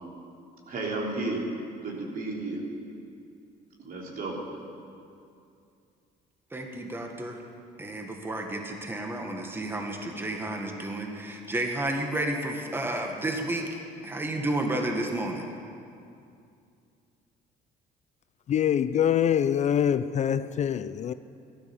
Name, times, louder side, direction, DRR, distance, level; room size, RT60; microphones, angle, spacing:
voice 1, 0.7-1.5 1.8-2.6 3.8-4.4, right 2 dB, 60° right, 3.7 m, -32 dB
voice 2, 6.5-7.4 7.8-13.7 14.0-15.5, right 1 dB, 15° right, 1.6 m, -31 dB
voice 3, 18.5-21.1, left 9 dB, 45° left, 0.4 m, -24 dB
15.0 x 13.0 x 7.0 m
cardioid pair, 110°, 17 cm